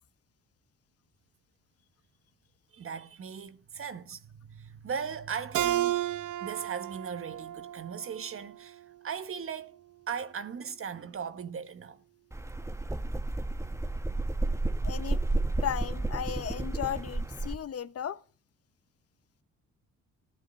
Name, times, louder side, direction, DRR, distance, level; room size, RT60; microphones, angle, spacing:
voice 1, 2.7-6.0 6.4-9.8 10.1-12.0, right 6 dB, 45° right, 1.4 m, -38 dB
Keyboard (musical), 5.5-8.8, right 13 dB, 85° right, 1.0 m, -32 dB
sound 1, 12.3-17.6, right 2 dB, 10° right, 1.0 m, -31 dB
voice 2, 14.8-15.2 15.6-18.2, left 9 dB, 50° left, 0.9 m, -35 dB
15.5 x 12.5 x 7.4 m
cardioid pair, 90°, 30 cm